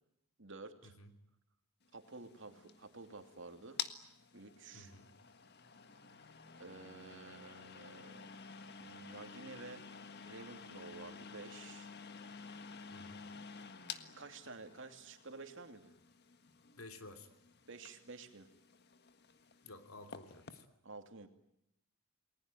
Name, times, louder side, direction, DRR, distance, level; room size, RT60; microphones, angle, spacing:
voice 1, 0.4-0.9 1.9-3.8 4.3-4.9 6.6-8.3 8.8-9.9 10.2-11.9 14.2-15.9 17.7-18.5 20.8-21.3, right 3 dB, 60° right, 6 dB, 2.8 m, -51 dB
sound 1, 1.9-20.7, left 6 dB, 50° left, 1.6 m, -51 dB
voice 2, 4.7-5.1 12.9-13.2 16.7-17.3 19.6-20.7, left 2 dB, 75° left, 7 dB, 3.1 m, -53 dB
29.0 x 20.5 x 9.3 m, 0.80 s
head